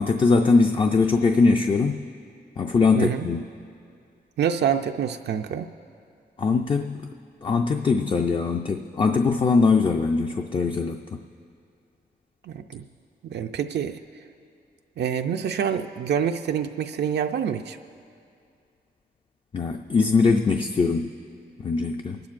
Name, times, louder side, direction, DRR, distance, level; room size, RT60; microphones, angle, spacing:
voice 1, 0.0-2.0 2.6-3.5 6.4-7.0 7.4-11.2 19.5-21.1 21.6-22.2, left 4 dB, 30° left, 4 dB, 0.4 m, -21 dB
voice 2, 3.0-3.3 4.4-5.7 12.5-12.9 13.2-14.0 15.0-17.8, right 8 dB, 80° right, 6 dB, 0.4 m, -26 dB
28.0 x 11.5 x 2.5 m, 2.4 s
wide cardioid pair, 135°, 18 cm